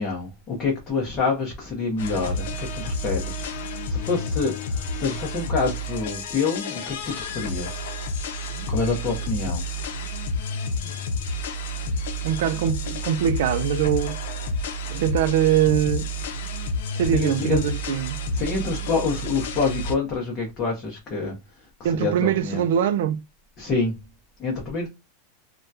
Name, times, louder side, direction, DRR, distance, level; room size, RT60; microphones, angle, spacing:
voice 1, 0.0-7.9 8.7-9.6 17.1-17.6 18.3-21.4 21.8-22.6 23.6-24.0 24.4-24.9, left 4 dB, 20° left, 0.7 m, -27 dB
sound 1, 2.0-19.9, left 1 dB, 75° left, 0.6 m, -30 dB
voice 2, 12.2-14.2 14.9-16.1 16.9-18.2 21.8-23.2, right 10 dB, 60° right, 0.4 m, -22 dB
3.5 x 2.2 x 2.7 m
supercardioid pair, 175°, 0 cm